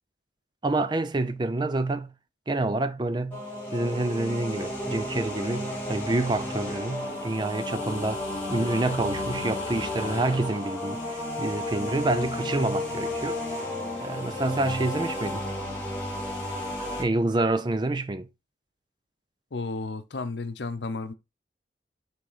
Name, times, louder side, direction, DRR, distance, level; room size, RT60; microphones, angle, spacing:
voice 1, 0.6-2.1 2.5-3.4 3.7-13.4 14.0-15.4 17.0-18.3, right 2 dB, 25° right, 0.5 m, -28 dB
sound 1, 3.3-17.0, left 1 dB, 10° left, 2.5 m, -32 dB
voice 2, 19.5-21.1, left 3 dB, 85° left, 0.8 m, -33 dB
6.2 x 3.4 x 4.9 m
head